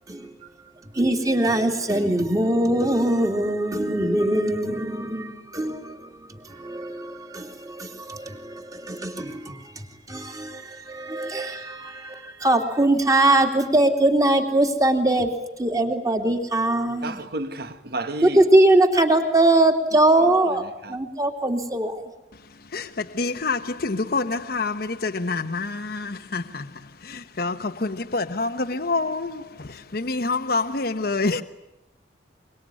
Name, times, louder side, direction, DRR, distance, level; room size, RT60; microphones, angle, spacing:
voice 1, 0.9-6.1 6.4-9.6 10.1-15.3 15.6-17.2 18.2-22.0, right 1 dB, 20° right, 2.9 m, -21 dB
voice 2, 17.0-18.4 20.8-21.0, right 2 dB, 60° right, 1.9 m, -31 dB
voice 3, 22.5-31.4, left 3 dB, 55° left, 1.0 m, -27 dB
24.0 x 23.5 x 9.9 m
head